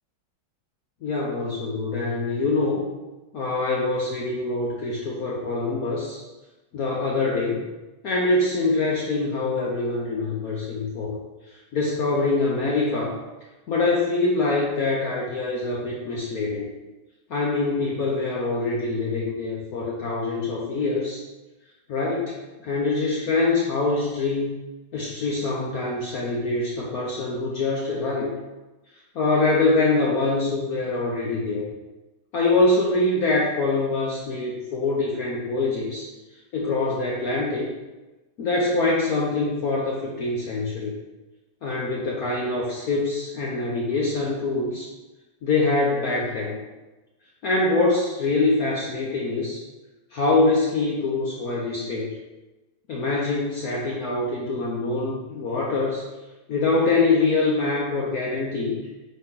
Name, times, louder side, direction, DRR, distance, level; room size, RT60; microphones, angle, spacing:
voice 1, 1.0-2.8 3.3-6.2 6.7-7.6 8.0-11.2 11.7-13.2 13.7-16.7 17.3-21.2 21.9-24.5 24.9-28.3 29.1-31.7 32.3-36.1 36.5-37.7 38.4-41.0 41.6-44.9 45.4-46.6 47.4-49.6 50.1-52.1 52.9-56.0 56.5-58.8, left 3 dB, 60° left, -4 dB, 1.1 m, -24 dB
8.8 x 3.0 x 3.7 m, 1.1 s
omnidirectional pair, 2.2 m